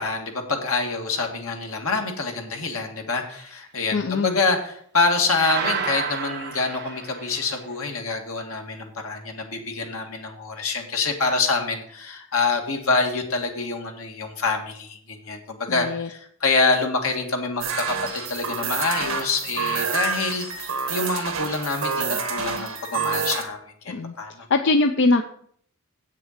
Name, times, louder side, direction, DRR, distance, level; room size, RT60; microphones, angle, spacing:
voice 1, 0.0-24.5, left 3 dB, 85° left, 3 dB, 1.8 m, -26 dB
voice 2, 3.9-4.4 15.7-16.1 23.9-24.1 24.5-25.2, left 3 dB, 60° left, 6 dB, 0.5 m, -21 dB
sound 1, 5.3-7.6, right 7 dB, 50° right, 0.9 m, -30 dB
sound 2, 17.6-23.4, right 5 dB, 70° right, 1.9 m, -28 dB
8.2 x 6.6 x 6.5 m, 0.63 s
head